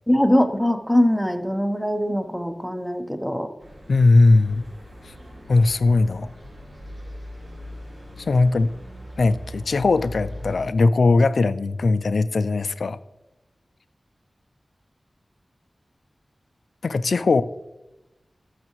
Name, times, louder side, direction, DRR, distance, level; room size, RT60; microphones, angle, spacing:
voice 1, 0.1-3.5, equal, ahead, 7 dB, 0.7 m, -22 dB
sound 1, 3.6-10.6, left 1 dB, 70° right, 3.6 m, -40 dB
voice 2, 3.9-4.7 5.5-6.3 8.3-8.7 9.2-13.0 16.8-17.4, left 3 dB, 90° left, 14 dB, 0.3 m, -19 dB
13.5 x 6.5 x 3.0 m, 1.0 s
wide cardioid pair, 90°, 0 cm